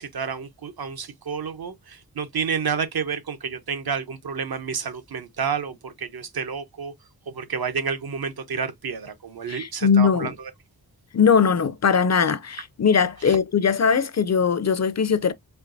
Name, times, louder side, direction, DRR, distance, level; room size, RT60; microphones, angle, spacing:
voice 1, 0.0-6.9 7.3-10.5 13.2-13.4, right 6 dB, 70° right, 0.8 m, -30 dB
voice 2, 9.5-10.3 11.1-15.3, left 6 dB, 45° left, 0.5 m, -20 dB
4.4 x 2.9 x 2.5 m
wide cardioid pair, 80°, 38 cm